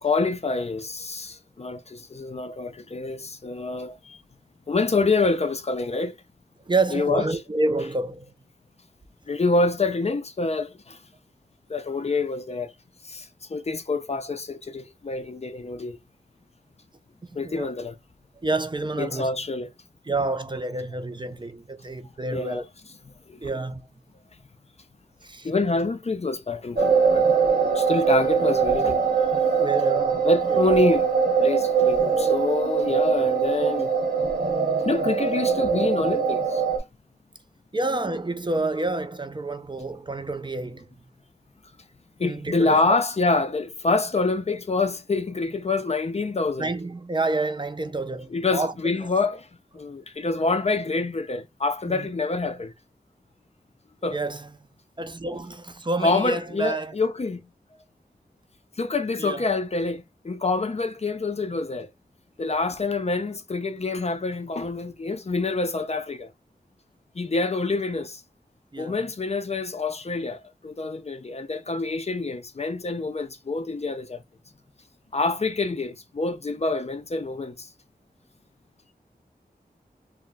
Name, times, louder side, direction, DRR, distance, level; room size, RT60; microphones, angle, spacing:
voice 1, 0.0-4.2 4.7-6.2 6.9-7.3 9.3-11.0 11.7-12.7 13.0-16.0 17.3-18.0 19.0-19.7 22.3-22.6 23.3-23.4 25.4-27.3 27.7-29.0 30.2-31.1 31.4-33.9 34.8-36.6 42.2-46.7 48.3-49.5 49.7-52.7 54.0-54.2 56.0-57.5 58.8-61.9 62.4-66.3 67.2-68.2 68.8-74.2 75.1-77.7, left 3 dB, 40° left, 0.4 m, -26 dB
voice 2, 6.6-8.3 17.2-17.7 18.4-19.3 20.1-22.6 23.4-23.8 25.2-25.5 29.6-30.6 37.7-40.9 42.2-43.0 46.6-48.7 51.9-52.1 54.1-54.5 55.0-57.0 59.2-59.4 68.7-69.0, right 2 dB, 30° right, 0.4 m, -28 dB
sound 1, 26.8-36.8, right 6 dB, 65° right, 1.0 m, -22 dB
2.2 x 2.1 x 3.8 m
wide cardioid pair, 55°, 17 cm